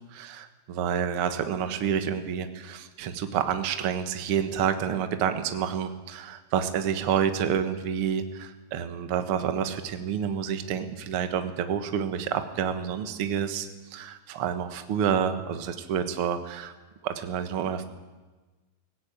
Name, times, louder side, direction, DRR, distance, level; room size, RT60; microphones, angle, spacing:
voice 1, 0.1-16.7 17.0-17.8, right 8 dB, 65° right, 9 dB, 1.4 m, -29 dB
18.5 x 16.5 x 8.9 m, 1.2 s
omnidirectional pair, 4.4 m